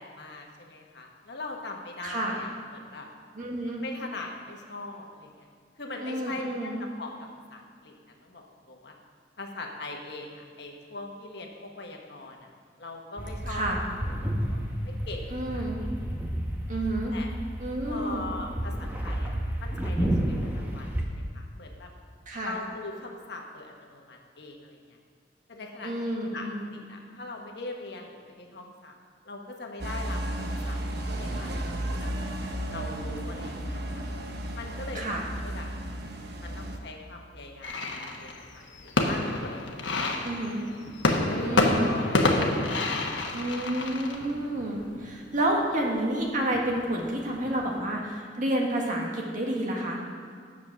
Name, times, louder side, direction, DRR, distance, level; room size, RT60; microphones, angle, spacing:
voice 1, 0.0-3.1 3.8-5.5 5.8-7.1 7.5-8.0 8.2-8.9 9.4-12.5 12.8-13.7 14.2-15.3 15.5-15.7 17.1-17.3 17.8-21.9 22.4-25.0 25.5-28.9 29.2-30.8 31.0-32.1 32.7-34.0 34.5-35.7 36.4-39.6 41.3-42.3 42.6-42.9, left 2 dB, 65° left, 1 dB, 1.3 m, -41 dB
voice 2, 2.0-2.3 3.3-3.8 6.0-6.8 13.5-13.8 15.3-15.8 16.7-17.1 17.6-18.3 22.3-22.5 25.8-26.6 34.9-35.2 40.2-40.7 41.4-41.9 43.3-50.0, right 1 dB, 45° right, -1 dB, 1.7 m, -30 dB
sound 1, 13.2-21.1, right 1 dB, 10° right, 1.0 m, -31 dB
sound 2, 29.8-36.8, right 1 dB, 60° right, 1.0 m, -33 dB
sound 3, 37.6-47.8, left 2 dB, 85° left, 1.1 m, -28 dB
9.6 x 7.4 x 6.2 m, 2.1 s
head